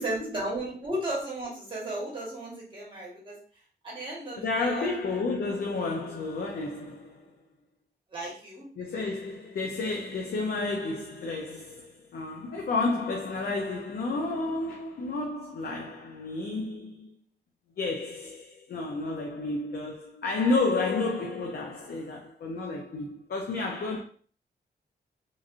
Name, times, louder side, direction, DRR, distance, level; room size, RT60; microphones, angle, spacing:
voice 1, 0.0-3.4 3.8-4.9 8.1-8.7, right 1 dB, 30° right, 1.1 m, -34 dB
voice 2, 4.4-7.3 8.8-17.1 17.8-24.0, left 3 dB, 65° left, 0.5 m, -31 dB
3.1 x 2.5 x 2.4 m
wide cardioid pair, 165°, 18 cm